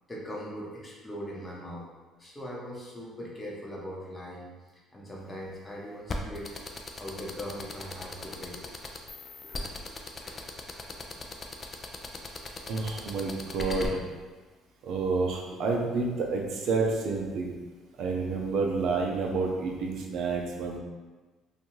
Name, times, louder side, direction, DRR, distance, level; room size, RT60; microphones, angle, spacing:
voice 1, 0.1-1.9 2.2-4.5 4.9-6.5 7.0-8.7 9.4-9.7 10.1-11.3 15.5-15.6 17.3-17.4, equal, 20° left, -4 dB, 0.8 m, -41 dB
sound 1, 6.1-13.9, left 3 dB, 35° left, 0.4 m, -37 dB
voice 2, 12.7-14.0 14.8-17.5 18.0-20.8, right 4 dB, 65° right, 0 dB, 0.5 m, -29 dB
2.6 x 2.3 x 3.0 m, 1.3 s
supercardioid pair, 75°, 0 cm